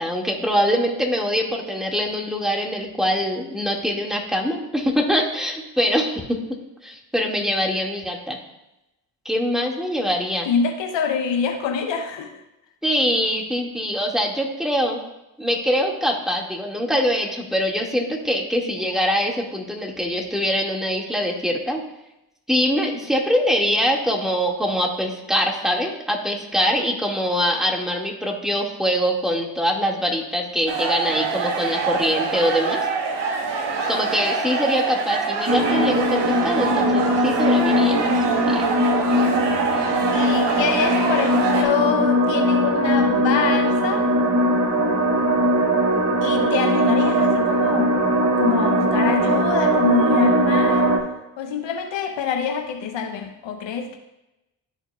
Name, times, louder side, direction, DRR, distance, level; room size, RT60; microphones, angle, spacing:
voice 1, 0.0-6.4 6.8-8.4 9.3-10.5 12.8-15.0 15.4-21.8 22.5-32.9 33.9-38.1 38.5-38.6, equal, ahead, -1 dB, 2.0 m, -23 dB
voice 2, 10.5-12.4 40.1-44.1 46.2-47.9 48.4-50.9 51.4-54.0, left 6 dB, 75° left, 4 dB, 0.8 m, -25 dB
sound 1, 30.7-41.6, right 5 dB, 65° right, 1.2 m, -25 dB
sound 2, 35.5-51.0, equal, 40° right, 1.4 m, -20 dB
13.0 x 4.4 x 2.4 m, 0.92 s
supercardioid pair, 40°, 44 cm